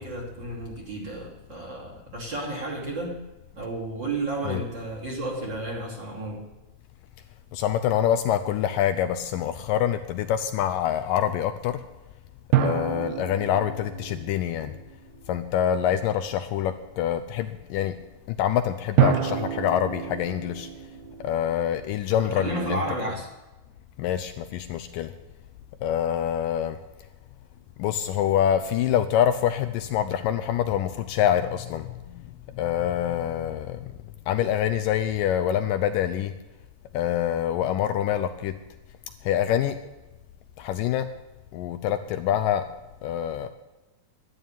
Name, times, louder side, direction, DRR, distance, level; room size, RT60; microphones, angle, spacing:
voice 1, 0.0-3.2 3.5-6.5 22.1-23.3, right 2 dB, 30° right, -1 dB, 3.0 m, -32 dB
voice 2, 7.5-11.8 12.6-14.7 15.3-17.9 18.4-20.7 21.2-22.8 24.0-25.1 25.8-26.8 27.8-32.2 32.6-33.9 34.3-36.3 36.9-38.5 39.2-39.8 40.6-41.1 41.5-42.6 43.0-43.5, left 10 dB, 80° left, 10 dB, 2.0 m, -25 dB
sound 1, 12.5-15.4 19.0-22.3, right 10 dB, 70° right, 2.6 m, -28 dB
11.5 x 11.0 x 8.9 m, 1.1 s
omnidirectional pair, 4.5 m